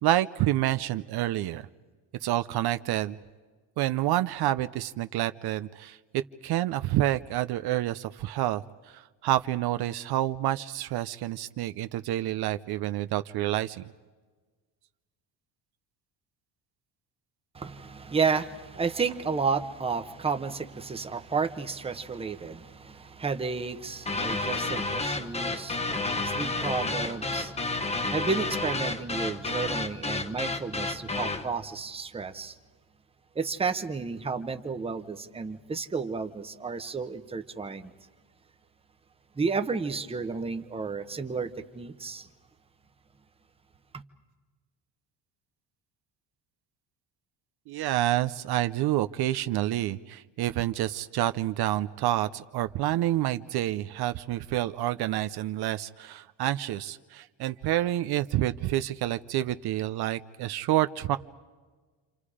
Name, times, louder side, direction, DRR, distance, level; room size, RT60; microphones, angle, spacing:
voice 1, 0.0-1.6 2.2-3.2 3.8-6.0 6.4-13.8 47.7-61.2, right 14 dB, 60° right, 0.7 m, -28 dB
voice 2, 17.5-27.8 28.1-32.6 33.3-37.9 39.4-42.3, right 5 dB, 15° right, 1.0 m, -32 dB
sound 1, 24.1-31.5, left 3 dB, 15° left, 1.0 m, -30 dB
29.5 x 27.0 x 5.0 m
cardioid pair, 155°, 43 cm